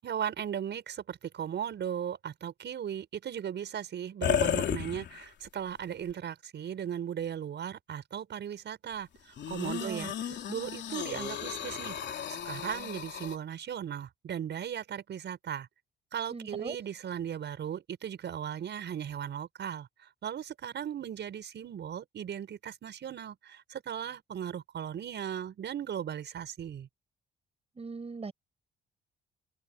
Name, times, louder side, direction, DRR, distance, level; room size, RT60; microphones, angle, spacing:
voice 1, 0.0-15.7 16.1-26.9, right 9 dB, 60° right, 6.6 m, -37 dB
sound 1, 4.2-5.5 6.1-6.2 9.4-13.4, left 9 dB, 60° left, 3.1 m, -34 dB
voice 2, 9.8-10.1 16.3-16.8 27.8-28.3, right 4 dB, 30° right, 7.8 m, -39 dB
open air
cardioid pair, 90°, 20 cm